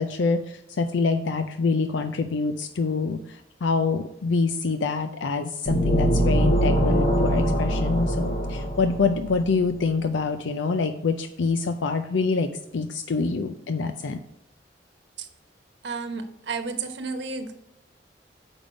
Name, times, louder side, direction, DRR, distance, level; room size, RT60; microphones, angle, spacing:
voice 1, 0.0-14.2, left 4 dB, 80° left, 7 dB, 0.5 m, -26 dB
sound 1, 5.7-9.4, right 1 dB, 40° left, 1.0 m, -23 dB
voice 2, 15.8-17.5, right 4 dB, 70° right, 6 dB, 1.1 m, -32 dB
6.9 x 5.4 x 5.1 m, 0.86 s
head